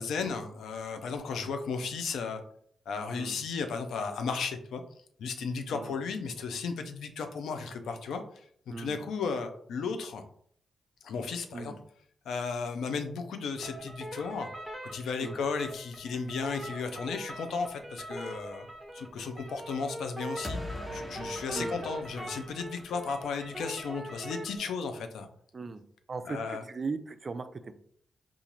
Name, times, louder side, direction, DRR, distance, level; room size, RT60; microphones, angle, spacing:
voice 1, 0.0-2.4 2.9-4.8 5.2-8.2 8.7-10.2 11.0-11.7 12.3-14.5 14.8-18.7 18.9-20.6 20.9-25.3 26.2-26.6, left 5 dB, 85° left, 7 dB, 0.4 m, -34 dB
voice 2, 8.7-9.0 11.5-11.8 15.2-15.4 21.5-21.8 25.5-25.8 26.1-27.7, right 4 dB, 45° right, 11 dB, 0.3 m, -38 dB
sound 1, 13.6-24.6, right 1 dB, 5° right, 1.0 m, -42 dB
sound 2, 20.4-23.3, left 1 dB, 20° left, 0.5 m, -42 dB
3.9 x 2.4 x 2.9 m, 0.63 s
cardioid pair, 65°, 0 cm